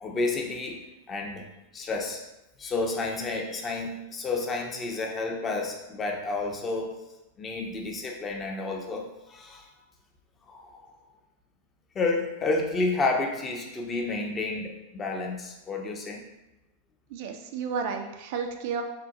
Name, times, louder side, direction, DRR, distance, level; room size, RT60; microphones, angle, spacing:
voice 1, 0.0-1.5 1.7-2.2 2.6-7.0 7.4-9.7 10.5-11.0 11.9-16.2, left 3 dB, 20° left, 2 dB, 0.5 m, -30 dB
voice 2, 17.1-18.8, right 6 dB, 50° right, 4 dB, 0.3 m, -32 dB
3.6 x 2.2 x 2.7 m, 0.98 s
figure-of-eight pair, 90°, 0 cm